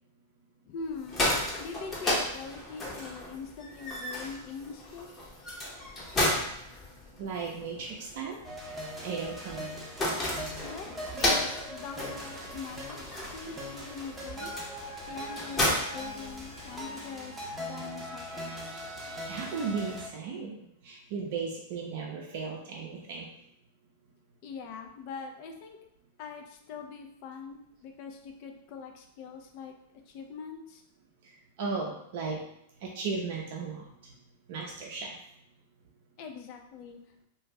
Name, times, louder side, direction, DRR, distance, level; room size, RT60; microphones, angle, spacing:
voice 1, 0.6-1.3 1.6-5.1 10.6-10.9 11.1-14.5 15.1-18.8 24.4-25.8 26.2-29.7 30.1-30.8 36.2-37.0, left 5 dB, 50° left, 4 dB, 0.5 m, -43 dB
sound 1, 0.9-16.8, left 1 dB, 25° left, 0.9 m, -34 dB
voice 2, 7.2-8.4 9.0-9.8 19.2-23.3 31.2-31.3 31.6-32.4 32.8-34.1 34.5-35.2, right 5 dB, 55° right, -2 dB, 0.5 m, -36 dB
sound 2, 8.4-20.1, equal, 15° right, 0.7 m, -41 dB
2.5 x 2.3 x 3.1 m, 0.76 s
hypercardioid pair, 105°, 0 cm